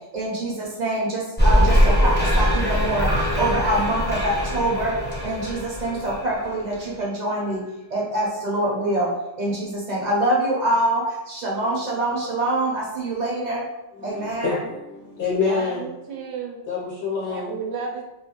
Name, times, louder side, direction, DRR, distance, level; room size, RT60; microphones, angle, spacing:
voice 1, 0.1-0.5 0.8-3.1 3.4-4.9 5.2-7.6 7.9-9.1 9.4-11.0 11.3-13.6 14.0-14.6, right 1 dB, 50° right, -4 dB, 0.6 m, -24 dB
sound 1, 1.4-6.8, equal, 15° left, 0.4 m, -21 dB
voice 2, 13.9-16.2 16.7-17.6, left 4 dB, 50° left, -5 dB, 0.8 m, -27 dB
voice 3, 15.3-16.6 17.2-18.0, right 5 dB, 90° right, 0 dB, 0.9 m, -32 dB
2.4 x 2.2 x 2.8 m, 0.95 s
omnidirectional pair, 1.2 m